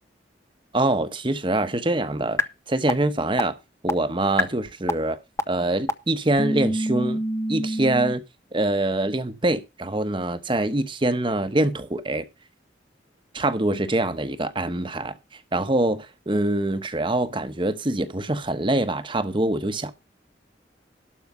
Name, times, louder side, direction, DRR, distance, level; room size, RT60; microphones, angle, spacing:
voice 1, 0.7-2.4 2.7-3.6 3.8-5.2 5.5-7.2 7.5-8.2 8.5-12.2 13.3-15.2 15.5-19.9, right 2 dB, 30° right, 1.1 m, -24 dB
sound 1, 2.4-2.5 2.9-3.0 3.4-3.5 3.9-4.0 4.4-4.5 4.9-5.0 5.4-5.5 5.9-6.0 6.4-8.1, left 1 dB, 15° left, 0.6 m, -24 dB
12.0 x 5.0 x 6.7 m
head